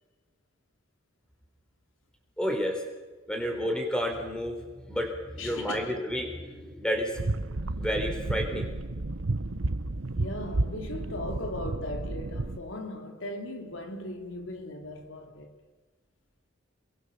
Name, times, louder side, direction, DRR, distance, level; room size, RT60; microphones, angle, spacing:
voice 1, 2.4-2.8 3.3-7.2 7.7-8.8, equal, 5° left, 4.1 m, -31 dB
voice 2, 5.4-6.0 10.2-15.5, left 1 dB, 75° left, 3.1 m, -38 dB
sound 1, 7.1-12.6, right 2 dB, 85° right, 1.1 m, -32 dB
29.0 x 22.5 x 7.0 m
head